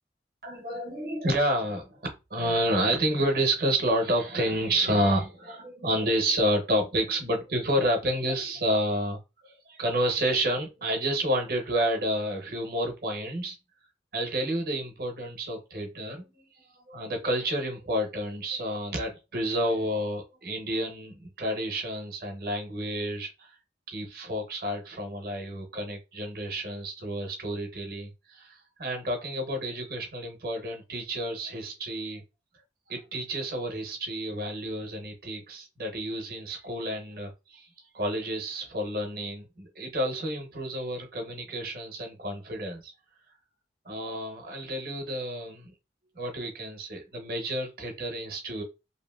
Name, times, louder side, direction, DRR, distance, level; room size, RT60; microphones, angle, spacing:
voice 1, 0.4-13.6 14.1-23.5 23.9-32.2 32.9-37.7 37.9-42.9 43.9-45.7 46.2-48.6, right 1 dB, 55° right, 0.7 m, -30 dB
2.7 x 2.5 x 2.3 m
head